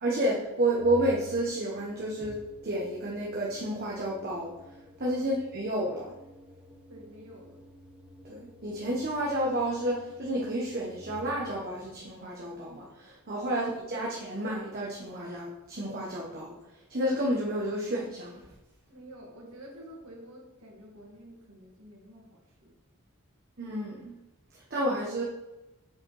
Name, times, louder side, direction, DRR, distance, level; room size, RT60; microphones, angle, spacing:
voice 1, 0.0-4.5 5.0-6.1 8.2-16.5 16.9-18.4 23.6-24.1 24.5-25.2, right 1 dB, 45° right, -4 dB, 1.1 m, -30 dB
Organ, 0.8-11.8, left 1 dB, 5° right, 0.8 m, -51 dB
voice 2, 6.9-7.6 18.9-22.8, equal, 70° right, -1 dB, 2.2 m, -49 dB
7.2 x 5.3 x 4.8 m, 1.0 s
head